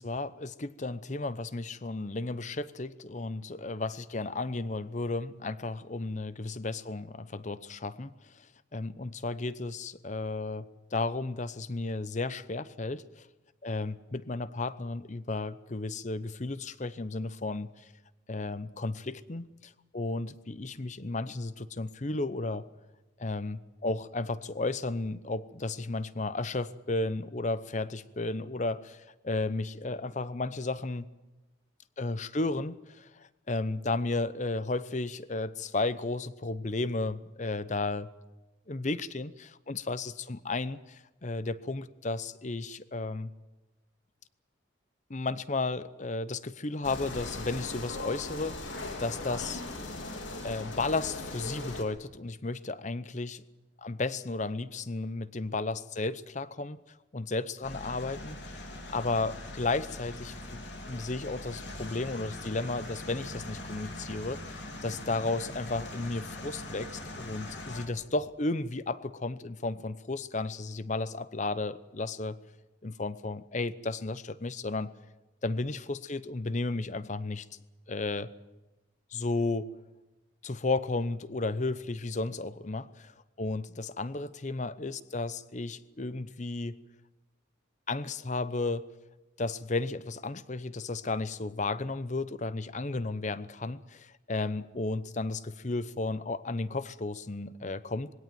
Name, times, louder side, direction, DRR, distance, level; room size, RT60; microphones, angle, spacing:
voice 1, 0.0-8.1 8.7-13.3 13.6-17.7 18.3-22.6 23.2-31.1 32.0-38.1 38.7-43.3 45.1-49.6 50.4-53.4 53.8-56.8 57.1-58.6 58.9-60.6 60.9-72.4 72.8-74.9 75.4-77.5 77.9-78.3 79.1-79.7 80.4-86.8 87.9-88.9 89.4-98.1, left 3 dB, 40° left, 16 dB, 0.8 m, -33 dB
sound 1, 46.8-51.8, left 2 dB, 85° left, 3.1 m, -39 dB
sound 2, 57.6-67.9, left 1 dB, 65° left, 3.6 m, -42 dB
21.0 x 17.0 x 9.2 m, 1.1 s
head